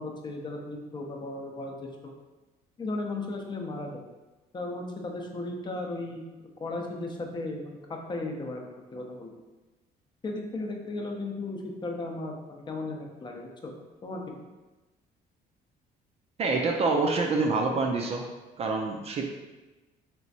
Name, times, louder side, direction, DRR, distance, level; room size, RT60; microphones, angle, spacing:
voice 1, 0.0-2.1 2.8-4.0 4.5-9.3 10.2-13.7 14.0-14.4, left 2 dB, 25° left, 1 dB, 0.6 m, -36 dB
voice 2, 16.4-18.2 18.6-19.3, right 3 dB, 40° right, 2 dB, 0.4 m, -26 dB
3.3 x 3.0 x 2.7 m, 1.1 s
cardioid pair, 110°, 17 cm